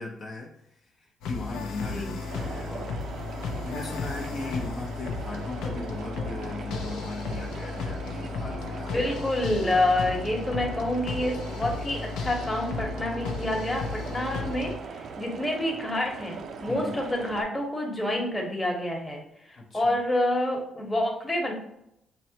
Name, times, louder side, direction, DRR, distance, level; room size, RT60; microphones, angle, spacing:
voice 1, 0.0-3.1 3.6-9.1 16.7-17.0 19.6-20.0, left 3 dB, 50° left, -2 dB, 0.7 m, -38 dB
sound 1, 1.2-14.8, left 4 dB, 90° left, 0.5 m, -34 dB
sound 2, 2.2-17.4, right 5 dB, 65° right, 0.4 m, -40 dB
voice 2, 8.9-21.5, left 1 dB, 15° left, -1 dB, 1.1 m, -28 dB
6.1 x 2.1 x 2.8 m, 0.79 s
cardioid pair, 90°, 0 cm